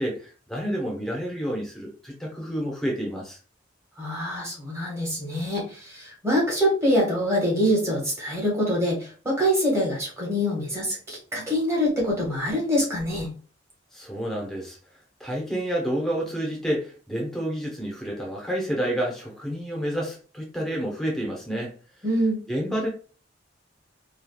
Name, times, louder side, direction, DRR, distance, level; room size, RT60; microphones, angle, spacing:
voice 1, 0.0-3.4 13.9-14.8 15.2-21.7 22.5-22.9, equal, ahead, -3 dB, 0.9 m, -29 dB
voice 2, 4.0-13.3 22.0-22.4, equal, 15° right, -4 dB, 1.3 m, -25 dB
3.2 x 2.4 x 2.3 m, 0.38 s
head